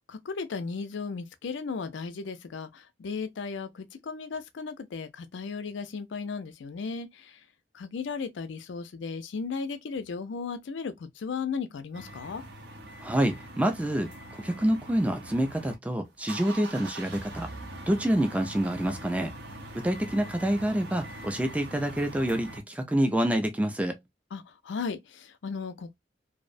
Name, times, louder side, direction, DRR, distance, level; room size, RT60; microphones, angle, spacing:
voice 1, 0.1-7.4 7.7-12.4 24.3-26.0, left 5 dB, 85° left, 0.4 m, -35 dB
sound 1, 11.9-15.8 16.1-22.6, right 1 dB, 65° right, 0.6 m, -43 dB
voice 2, 13.0-17.5 17.9-19.3 19.7-24.0, right 1 dB, 5° right, 0.3 m, -27 dB
2.6 x 2.0 x 2.4 m
head